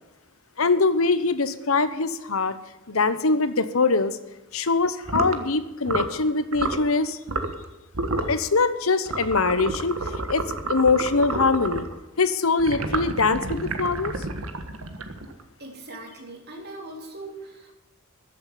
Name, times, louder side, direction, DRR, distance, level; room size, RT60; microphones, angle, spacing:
voice 1, 0.6-2.6 2.9-4.2 4.5-7.2 8.3-10.0 10.3-11.9 12.2-14.1, left 4 dB, 80° left, 13 dB, 1.1 m, -23 dB
sound 1, 5.0-5.4 5.8-6.2 6.5-6.8 7.3-7.6 7.9-8.4 9.1-11.9 12.6-15.4, right 2 dB, 80° right, 1.5 m, -29 dB
voice 2, 15.6-17.7, right 2 dB, 50° right, 2 dB, 3.4 m, -40 dB
14.5 x 7.9 x 8.8 m, 0.99 s
head